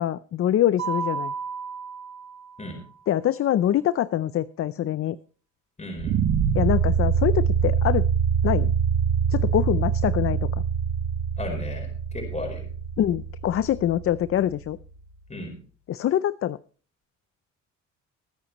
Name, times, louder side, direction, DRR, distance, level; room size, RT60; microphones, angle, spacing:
voice 1, 0.0-1.3 3.1-5.2 6.5-8.1 8.4-8.7 9.3-10.5 13.0-14.8 15.9-16.6, left 11 dB, 50° left, 16 dB, 0.5 m, -24 dB
Mallet percussion, 0.8-2.9, right 5 dB, 60° right, 2.0 m, -33 dB
voice 2, 5.8-6.2 11.4-12.6 15.3-15.5, left 2 dB, 25° left, 2 dB, 4.7 m, -34 dB
sound 1, 6.0-15.0, right 7 dB, 80° right, 1.7 m, -25 dB
21.0 x 9.2 x 3.0 m, 0.40 s
cardioid pair, 90°, 30 cm